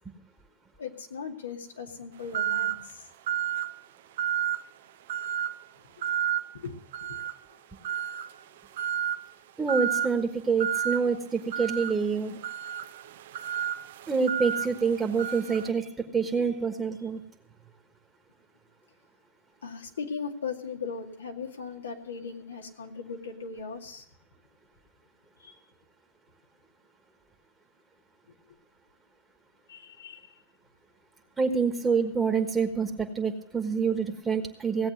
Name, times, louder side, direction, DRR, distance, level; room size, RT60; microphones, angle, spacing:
voice 1, 0.8-3.1 5.8-5.9 6.5-7.2 19.6-24.0 25.4-25.6 28.3-28.4 29.7-30.4, left 5 dB, 90° left, 3 dB, 2.2 m, -38 dB
sound 1, 2.3-2.8 3.3-3.7 4.2-4.7 5.1-5.5 6.0-6.4 6.9-7.4 7.8-8.3 8.8-9.2 9.7-10.1 10.6-11.0 11.5-15.7, right 10 dB, 65° right, 0.7 m, -31 dB
voice 2, 9.6-12.4 14.1-17.2 31.4-34.9, right 5 dB, 15° right, 4 dB, 1.4 m, -27 dB
17.0 x 8.2 x 6.6 m, 0.70 s
hypercardioid pair, 120°, 0 cm